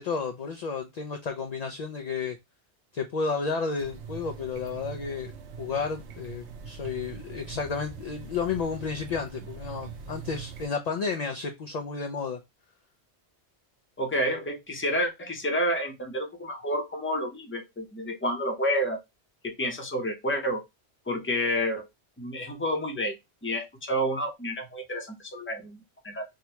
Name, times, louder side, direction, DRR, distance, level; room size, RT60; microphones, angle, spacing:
voice 1, 0.0-2.4 2.9-5.3 5.6-12.4, left 5 dB, 55° left, 0.4 m, -32 dB
sound 1, 3.8-10.7, right 6 dB, 90° right, 0.9 m, -42 dB
voice 2, 14.0-19.0 19.4-20.6 21.1-21.9 22.2-23.1 23.4-26.2, equal, 15° left, 0.6 m, -29 dB
3.6 x 2.2 x 2.8 m
omnidirectional pair, 1.1 m